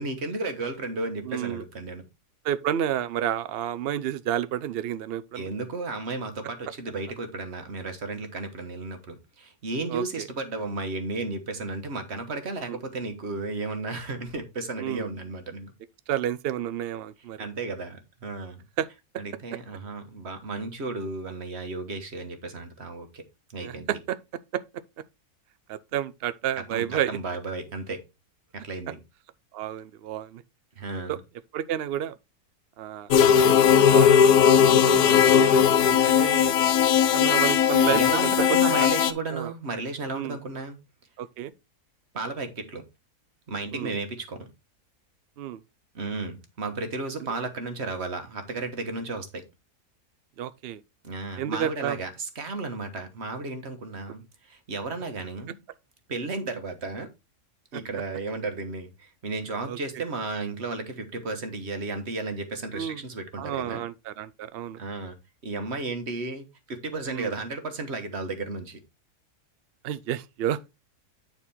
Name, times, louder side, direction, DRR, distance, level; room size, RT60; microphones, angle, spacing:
voice 1, 0.0-2.1 5.3-15.7 17.4-18.6 19.2-23.2 23.5-23.9 26.7-28.1 28.5-29.0 30.8-31.2 37.9-40.8 42.1-42.8 43.5-44.5 45.9-49.4 51.0-55.5 56.1-57.1 57.7-63.8 64.8-65.2 65.4-68.8, right 3 dB, 45° right, 1.5 m, -33 dB
voice 2, 1.2-1.6 2.4-5.5 9.9-10.2 12.7-12.8 14.8-15.1 16.1-17.4 18.8-18.9 23.6-24.2 24.5-24.8 25.7-27.1 29.5-30.4 31.1-31.2 31.5-32.2 32.8-33.1 33.4-33.7 33.9-36.6 37.1-38.3 38.8-38.9 39.3-39.5 40.1-40.4 41.2-41.5 43.7-43.9 45.4-45.6 50.4-50.8 51.4-52.0 57.7-57.8 59.7-59.8 62.7-63.0 63.4-64.8 67.1-67.3 69.8-70.7, right 11 dB, 80° right, 0.5 m, -30 dB
sound 1, 33.1-39.1, left 8 dB, 75° left, 1.2 m, -18 dB
9.2 x 4.4 x 4.1 m
omnidirectional pair, 1.7 m